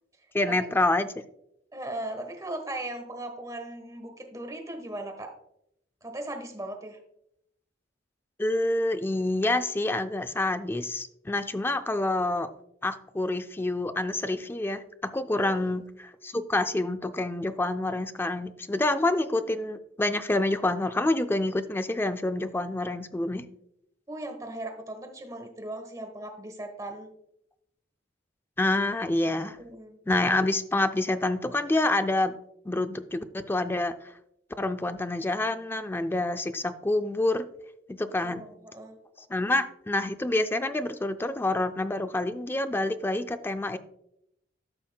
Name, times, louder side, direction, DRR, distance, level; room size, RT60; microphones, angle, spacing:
voice 1, 0.3-1.1 8.4-12.5 12.8-15.8 16.2-23.5 28.6-29.6 30.1-32.3 32.7-33.9 34.6-37.5 37.9-38.4 39.3-43.8, left 2 dB, 10° left, 10 dB, 0.4 m, -27 dB
voice 2, 1.7-5.3 6.0-7.0 15.4-15.6 24.1-27.1 29.6-30.0 38.2-39.0, right 1 dB, 20° right, 5 dB, 1.2 m, -38 dB
13.5 x 5.6 x 2.3 m, 0.77 s
head